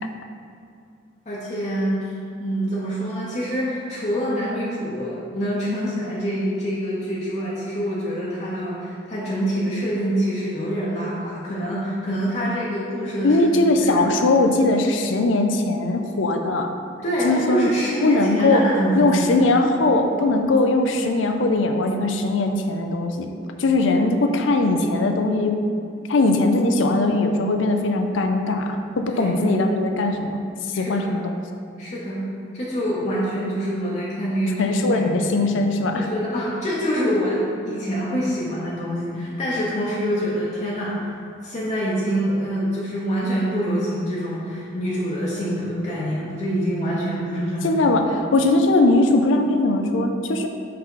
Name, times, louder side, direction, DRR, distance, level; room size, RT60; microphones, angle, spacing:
voice 1, 1.3-2.1 2.4-14.1 17.0-19.4 29.1-29.5 30.7-31.1 31.8-32.3 32.5-35.5 36.0-41.2 41.4-47.8, equal, 35° left, -7 dB, 0.8 m, -26 dB
voice 2, 13.2-16.7 17.2-17.7 18.0-18.6 19.0-23.3 23.6-25.5 26.1-30.4 30.7-31.3 34.6-36.1 47.6-50.5, left 2 dB, 85° left, 5 dB, 0.5 m, -20 dB
5.7 x 4.9 x 3.7 m, 2.4 s
head